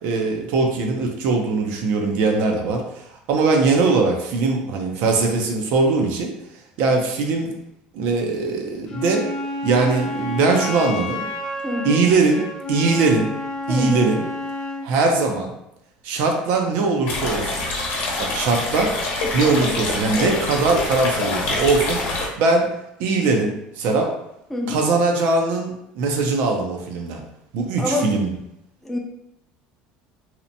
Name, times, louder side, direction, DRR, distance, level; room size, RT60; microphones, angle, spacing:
voice 1, 0.0-6.3 6.8-7.5 7.9-9.3 9.6-11.2 11.8-12.4 12.7-13.3 13.7-14.2 14.8-15.6 16.0-17.7 18.2-18.9 19.3-22.7 23.0-24.1 24.7-27.2 27.5-28.3, right 3 dB, 70° right, 2 dB, 0.5 m, -21 dB
Wind instrument woodwind instrument, 8.9-14.9, left 1 dB, 25° left, 0.8 m, -30 dB
voice 2, 11.6-12.1 13.7-14.1 19.3-19.8 20.2-20.5 24.5-24.8 27.8-28.3 28.8-29.0, left 2 dB, 5° left, 0 dB, 0.4 m, -27 dB
sound 1, 17.1-22.3, left 2 dB, 65° left, 0.8 m, -26 dB
2.8 x 2.1 x 2.6 m, 0.80 s
cardioid pair, 135°, 3 cm